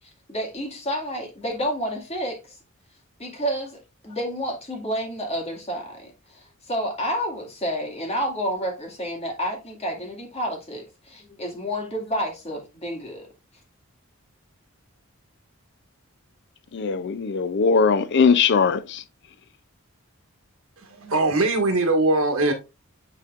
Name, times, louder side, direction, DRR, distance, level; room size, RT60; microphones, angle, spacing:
voice 1, 0.3-2.6 3.2-13.3, equal, 30° left, 2.0 m, -30 dB
voice 2, 16.7-19.0, left 5 dB, 55° left, 0.5 m, -20 dB
voice 3, 20.8-22.5, right 2 dB, 70° right, 1.8 m, -21 dB
9.8 x 4.2 x 2.4 m
head